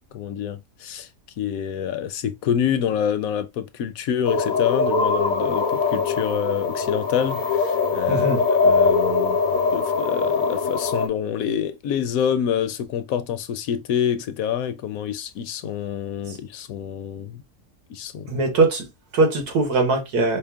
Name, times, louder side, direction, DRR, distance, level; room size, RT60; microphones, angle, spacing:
voice 1, 0.1-1.1 1.4-8.3 8.6-9.4 9.7-17.4 17.9-18.4, left 8 dB, 70° left, 0.9 m, -27 dB
sound 1, 4.2-11.1, left 4 dB, 50° left, 0.6 m, -22 dB
voice 2, 8.1-8.4 16.3-16.4 18.3-20.4, right 3 dB, 90° right, 1.8 m, -21 dB
5.0 x 2.1 x 3.5 m
omnidirectional pair, 1.6 m